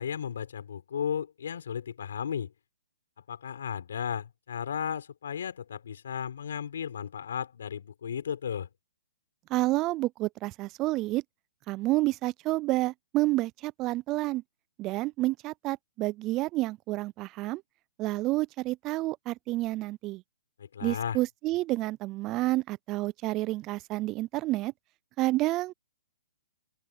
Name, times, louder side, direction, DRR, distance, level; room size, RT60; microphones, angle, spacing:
voice 1, 0.0-2.5 3.3-8.7 20.6-21.2, left 8 dB, 70° left, 4.9 m, -34 dB
voice 2, 9.5-11.2 11.7-14.4 14.8-17.6 18.0-20.2 20.8-24.7 25.2-25.7, right 18 dB, 25° right, 0.4 m, -29 dB
open air
hypercardioid pair, 150°, 0 cm